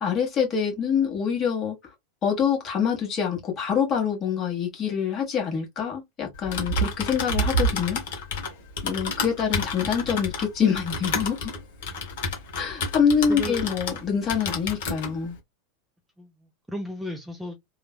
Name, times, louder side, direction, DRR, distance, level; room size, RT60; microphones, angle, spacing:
voice 1, 0.0-1.7 2.2-8.2 8.8-11.5 12.6-15.4, left 7 dB, 30° left, 1.4 m, -25 dB
Typing, 6.3-14.0 14.3-15.1, left 1 dB, 55° left, 0.9 m, -29 dB
voice 2, 13.3-13.6 16.2-17.6, equal, 5° right, 0.5 m, -35 dB
3.1 x 2.2 x 2.2 m
figure-of-eight pair, 85°, 0 cm